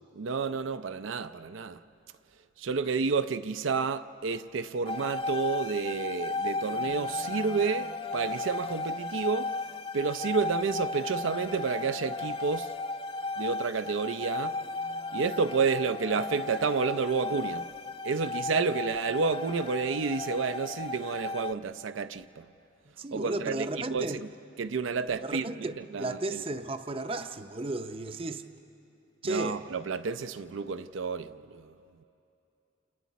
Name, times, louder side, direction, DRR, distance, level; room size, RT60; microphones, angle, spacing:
voice 1, 0.2-1.8 2.6-9.5 9.9-12.7 13.4-14.6 15.1-17.7 18.0-22.5 23.1-24.1 24.6-25.5 25.8-26.4 29.2-31.7, right 5 dB, 70° right, 0.5 m, -30 dB
sound 1, 4.9-21.5, left 3 dB, 25° left, 0.4 m, -35 dB
voice 2, 23.0-24.2 25.2-28.4 29.2-29.6, right 2 dB, 25° right, 0.6 m, -34 dB
28.5 x 28.0 x 4.1 m
head